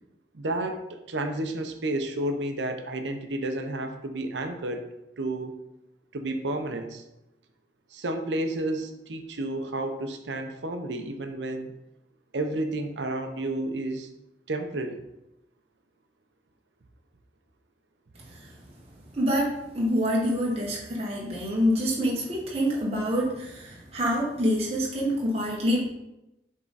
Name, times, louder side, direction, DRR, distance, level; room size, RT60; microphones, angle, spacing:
voice 1, 0.3-4.8 5.2-5.5 6.1-7.0 7.9-11.7 12.3-14.1 14.5-15.0, right 1 dB, 90° right, 6 dB, 0.8 m, -31 dB
voice 2, 18.1-18.5 19.1-25.9, equal, 35° right, -4 dB, 1.2 m, -26 dB
7.3 x 3.8 x 4.0 m, 0.91 s
head